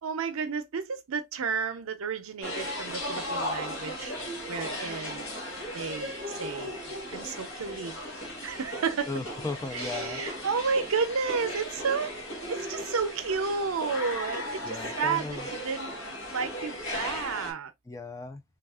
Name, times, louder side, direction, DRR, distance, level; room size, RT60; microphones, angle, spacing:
voice 1, 0.0-4.2 4.5-5.3 5.7-6.8 7.1-8.0 8.4-9.1 9.7-12.2 12.5-17.7, right 5 dB, 80° right, 0.6 m, -32 dB
sound 1, 2.4-17.5, left 1 dB, 70° left, 1.1 m, -36 dB
voice 2, 9.1-10.4 14.6-15.5 17.9-18.4, left 3 dB, 15° left, 0.4 m, -36 dB
3.2 x 2.4 x 2.3 m
head